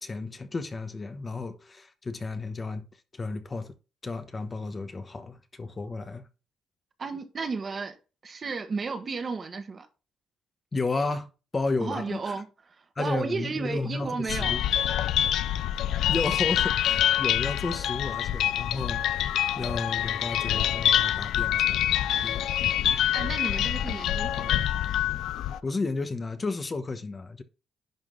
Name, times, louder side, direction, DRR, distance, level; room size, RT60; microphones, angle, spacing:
voice 1, 0.0-2.8 3.1-3.7 4.0-6.2 10.7-12.3 13.0-14.6 16.1-19.2 19.6-22.7 25.6-27.4, left 3 dB, 30° left, 1.0 m, -33 dB
voice 2, 7.0-8.0 8.2-9.9 11.8-14.6 23.1-24.7, right 4 dB, 40° right, 1.6 m, -33 dB
sound 1, 14.3-25.6, left 11 dB, 80° left, 0.4 m, -26 dB
10.5 x 3.8 x 3.6 m
cardioid pair, 90°, 0 cm